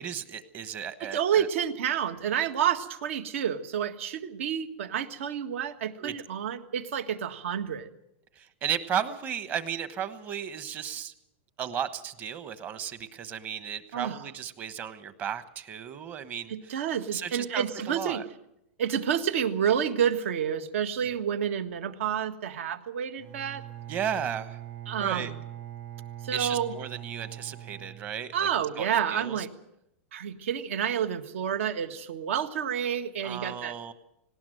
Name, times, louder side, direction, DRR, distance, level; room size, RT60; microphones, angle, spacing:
voice 1, 0.0-1.5 6.0-6.2 8.3-11.1 11.6-16.9 17.1-18.2 23.9-24.6 25.0-25.3 26.3-28.5 28.8-29.5 33.2-33.9, right 9 dB, 25° right, 12 dB, 1.1 m, -34 dB
voice 2, 1.0-7.9 13.9-14.2 16.5-18.2 18.8-23.6 24.9-25.4 26.2-26.7 28.3-29.5 30.1-33.7, right 8 dB, 75° right, 9 dB, 1.7 m, -29 dB
Bowed string instrument, 23.2-28.7, right 12 dB, 45° right, 4.0 m, -42 dB
19.0 x 18.0 x 7.8 m, 0.81 s
supercardioid pair, 160°, 7 cm